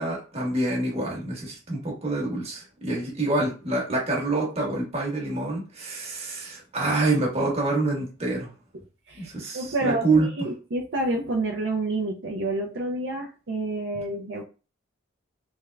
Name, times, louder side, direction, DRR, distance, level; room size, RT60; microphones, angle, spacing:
voice 1, 0.0-8.5 9.1-10.3, right 2 dB, 30° right, -3 dB, 1.3 m, -26 dB
voice 2, 9.1-14.4, right 2 dB, 60° right, -1 dB, 0.6 m, -29 dB
3.5 x 3.3 x 2.2 m, 0.33 s
head